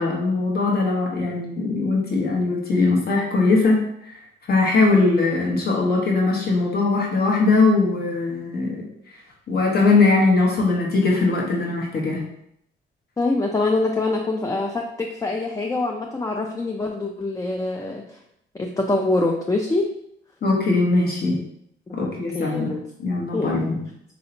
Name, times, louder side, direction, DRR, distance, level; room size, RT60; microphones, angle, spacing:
voice 1, 0.0-4.2 4.5-8.8 9.5-12.2 20.4-21.4 21.9-22.7 23.0-23.8, left 3 dB, 55° left, -1 dB, 1.1 m, -20 dB
voice 2, 13.2-18.2 18.5-19.9 21.9-22.8 23.3-23.7, left 2 dB, 15° left, 1 dB, 0.4 m, -25 dB
4.2 x 2.7 x 2.8 m, 0.74 s
cardioid pair, 90°, 20 cm